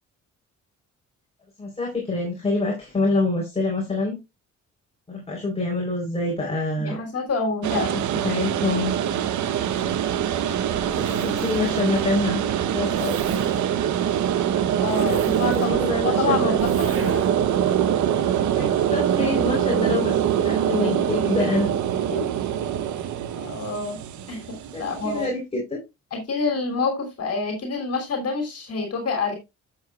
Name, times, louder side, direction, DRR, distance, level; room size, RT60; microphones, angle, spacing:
voice 1, 1.6-4.2 5.1-7.0 7.7-8.9 11.0-12.4 12.7-13.2 15.4-16.6 18.6-21.7 22.1-22.3 24.7-25.8, left 3 dB, 20° left, -2 dB, 3.9 m, -26 dB
voice 2, 6.8-7.9 14.8-15.8 16.0-17.3 23.4-24.0 24.3-25.3 26.1-29.3, left 4 dB, 55° left, 3 dB, 3.2 m, -27 dB
sound 1, 7.6-25.3, right 10 dB, 75° right, 0.9 m, -24 dB
Zipper (clothing), 9.6-17.6, right 5 dB, 45° right, 1.4 m, -36 dB
11.5 x 7.2 x 2.4 m, 0.23 s
cardioid pair, 90°, 30 cm